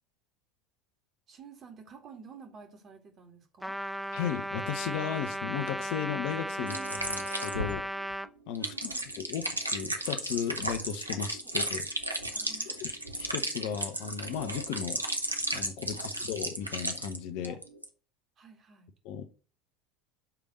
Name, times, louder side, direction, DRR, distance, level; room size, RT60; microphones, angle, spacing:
voice 1, 1.3-3.8 6.6-7.0 8.6-9.1 12.3-12.8 15.9-16.0 17.4-17.6 18.4-18.9, right 5 dB, 35° right, 2.1 m, -50 dB
Trumpet, 3.6-8.3, equal, ahead, 0.4 m, -36 dB
voice 2, 4.1-6.8 7.1-7.8 8.5-8.7 9.2-11.9 12.7-15.0 15.5-17.6 19.0-19.2, left 8 dB, 55° left, 0.8 m, -35 dB
sound 1, 6.7-17.2 17.4-17.8, right 1 dB, 90° right, 0.8 m, -34 dB
6.9 x 3.5 x 6.2 m
figure-of-eight pair, 75°, 0 cm